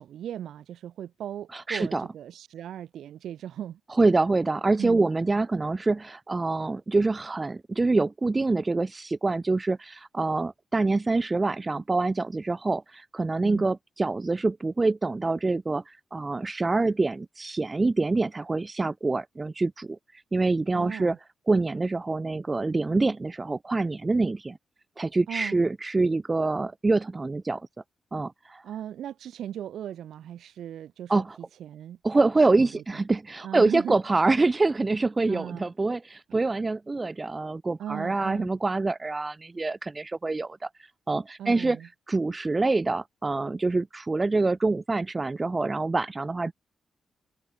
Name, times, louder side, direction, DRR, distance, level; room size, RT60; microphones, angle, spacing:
voice 1, 0.0-3.8 4.8-5.1 13.4-13.7 20.7-21.2 25.3-25.6 28.6-31.2 31.6-32.0 32.4-32.8 33.4-33.9 35.3-35.7 37.8-38.5 41.4-41.9, right 10 dB, 80° right, 1.4 m, -37 dB
voice 2, 1.5-2.0 3.9-21.2 21.5-24.6 25.0-27.6 28.1-28.6 31.1-31.4 32.0-41.8 42.1-46.5, right 3 dB, 15° right, 0.3 m, -26 dB
open air
wide cardioid pair, 180°, 0 cm